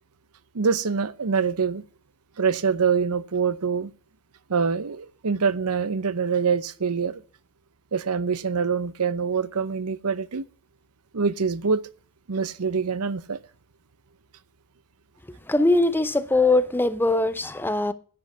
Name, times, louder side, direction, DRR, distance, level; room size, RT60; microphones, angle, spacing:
voice 1, 0.5-1.8 2.4-3.9 4.5-7.2 7.9-10.4 11.1-11.8 12.3-13.4, right 5 dB, 80° right, 0.8 m, -25 dB
voice 2, 15.5-17.9, left 2 dB, 10° left, 0.7 m, -21 dB
9.7 x 7.9 x 8.4 m
head